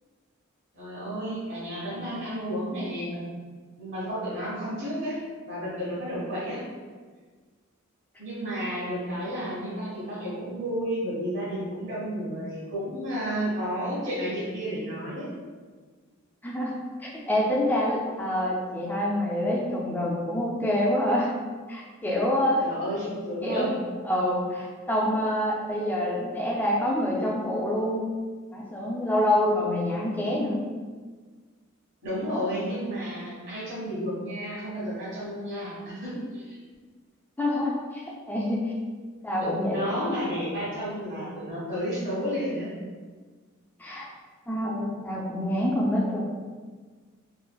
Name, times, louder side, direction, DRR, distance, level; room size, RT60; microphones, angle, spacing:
voice 1, 0.7-3.2 3.8-5.2 5.4-6.6 8.2-15.3 22.6-23.7 32.0-36.6 39.4-42.7, equal, 60° right, -7 dB, 1.4 m, -32 dB
voice 2, 16.4-21.3 21.7-22.7 23.4-23.7 24.1-28.1 28.5-30.7 37.4-38.0 38.3-38.7 39.2-39.8 43.8-44.1 44.5-46.2, left 1 dB, 10° left, -4 dB, 0.4 m, -26 dB
3.2 x 2.4 x 2.2 m, 1.5 s
head